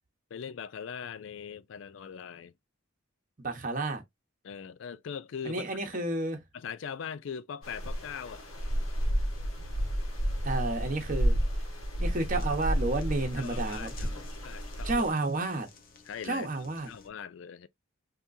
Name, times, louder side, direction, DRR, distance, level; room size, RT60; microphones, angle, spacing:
voice 1, 0.3-2.5 4.4-5.6 6.5-8.4 13.4-15.1 16.1-16.5 16.9-17.7, left 7 dB, 65° left, 0.4 m, -41 dB
voice 2, 3.4-4.0 5.4-6.4 10.4-11.4 12.0-14.1 14.8-15.7 16.2-16.9, right 2 dB, 40° right, 1.0 m, -31 dB
sound 1, 7.6-15.1, equal, 85° left, 1.3 m, -31 dB
sound 2, 12.1-17.1, left 4 dB, 45° left, 0.8 m, -54 dB
3.6 x 2.9 x 2.6 m
head